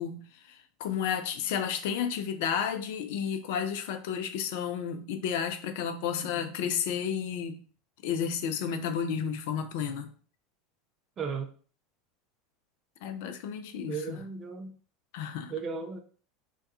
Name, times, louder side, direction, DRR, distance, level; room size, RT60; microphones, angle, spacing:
voice 1, 0.0-7.6 8.0-10.1 13.0-14.2 15.1-15.5, left 8 dB, 60° left, 0.3 m, -32 dB
voice 2, 11.2-11.6 13.9-14.7 15.5-16.0, right 5 dB, 30° right, 0.4 m, -35 dB
2.2 x 2.2 x 2.7 m
figure-of-eight pair, 80°, 0 cm